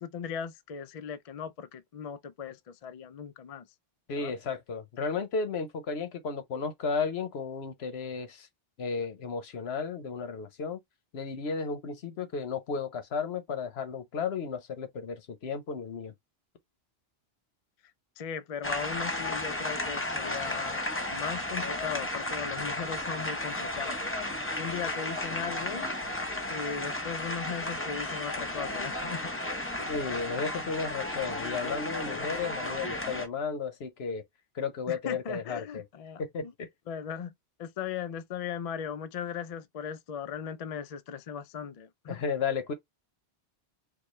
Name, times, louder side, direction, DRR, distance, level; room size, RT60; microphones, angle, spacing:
voice 1, 0.0-3.7 4.2-4.3 18.2-20.8 21.1-25.9 26.5-29.9 34.9-36.5 36.9-37.3 37.6-42.2, left 7 dB, 55° left, 0.4 m, -38 dB
voice 2, 4.1-8.5 8.8-10.8 11.1-16.1 29.9-34.2 34.5-35.8 36.2-36.7 42.1-42.7, left 5 dB, 80° left, 1.1 m, -33 dB
sound 1, 18.6-33.3, left 1 dB, 15° left, 0.8 m, -34 dB
4.7 x 2.3 x 3.1 m
omnidirectional pair, 1.1 m